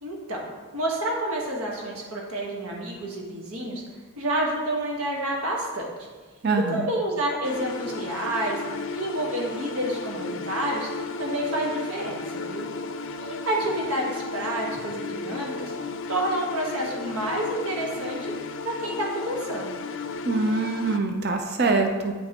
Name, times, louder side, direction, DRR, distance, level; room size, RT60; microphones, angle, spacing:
voice 1, 0.0-3.8 4.2-5.9 6.7-8.6 8.9-10.9 11.2-12.6 13.2-15.7 16.1-18.3 18.6-19.8, right 1 dB, 85° right, -1 dB, 1.4 m, -29 dB
voice 2, 6.4-6.9 20.2-22.1, right 3 dB, 50° right, 4 dB, 0.6 m, -24 dB
sound 1, 7.4-21.0, left 3 dB, 65° left, 0.4 m, -34 dB
8.7 x 5.5 x 2.9 m, 1.3 s
head